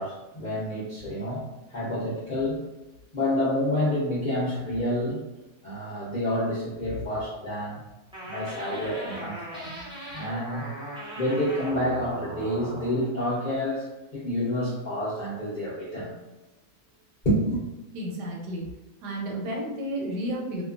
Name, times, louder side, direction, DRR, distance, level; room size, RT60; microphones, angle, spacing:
voice 1, 0.0-1.4 1.7-2.6 3.1-5.2 5.6-7.8 8.2-9.7 10.1-10.6 11.1-13.9 14.1-16.1 17.2-17.6, left 1 dB, 55° left, -10 dB, 0.5 m, -28 dB
sound 1, 8.1-13.1, right 1 dB, 5° right, 0.5 m, -39 dB
voice 2, 17.9-18.6 19.0-20.6, right 1 dB, 85° right, -2 dB, 1.3 m, -32 dB
2.9 x 2.3 x 2.4 m, 1.0 s
omnidirectional pair, 1.7 m